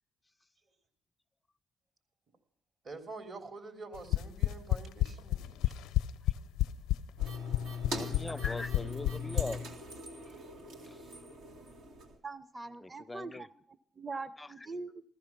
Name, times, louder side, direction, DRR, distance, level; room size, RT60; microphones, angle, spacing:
voice 1, 2.8-5.7, right 3 dB, 50° right, 5 dB, 3.0 m, -46 dB
sound 1, 3.9-9.5, left 15 dB, 80° left, 0.5 m, -29 dB
sound 2, 7.2-12.2, left 3 dB, 80° right, 2.4 m, -41 dB
voice 2, 7.9-9.6 10.2-10.3 10.8-11.0 12.8-13.5 14.4-14.5, left 2 dB, 20° left, 18 dB, 0.5 m, -41 dB
voice 3, 12.2-13.5 14.0-15.0, right 3 dB, 25° right, 15 dB, 0.8 m, -42 dB
15.0 x 14.5 x 6.0 m, 0.68 s
supercardioid pair, 65°, 0 cm